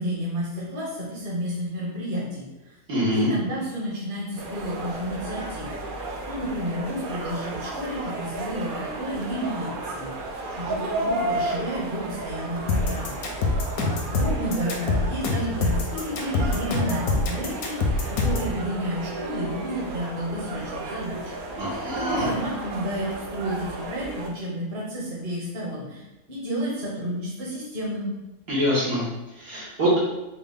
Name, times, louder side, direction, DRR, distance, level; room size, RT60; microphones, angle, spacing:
voice 1, 0.0-2.8 3.1-21.7 21.9-28.1, equal, 40° right, -5 dB, 1.2 m, -31 dB
voice 2, 2.9-3.3 21.6-22.3 28.5-29.0 29.4-29.9, equal, 85° right, -7 dB, 1.8 m, -24 dB
sound 1, 4.4-24.3, right 2 dB, 70° right, 0.5 m, -33 dB
sound 2, 12.7-18.5, left 3 dB, 90° left, 1.1 m, -24 dB
4.4 x 2.1 x 3.5 m, 1.0 s
omnidirectional pair, 1.5 m